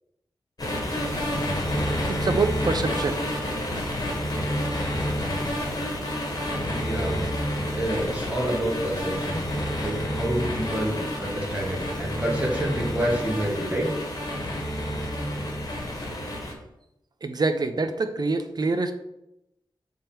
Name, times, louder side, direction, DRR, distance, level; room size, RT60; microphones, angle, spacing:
sound 1, 0.6-16.5, equal, 45° left, 1.5 m, -29 dB
voice 1, 2.1-3.2 17.2-18.9, right 3 dB, 50° right, 8 dB, 0.6 m, -25 dB
voice 2, 6.7-7.2 7.7-9.4 9.8-13.9, right 1 dB, 15° right, -3 dB, 1.9 m, -28 dB
6.8 x 3.7 x 4.4 m, 0.87 s
wide cardioid pair, 110°, 9 cm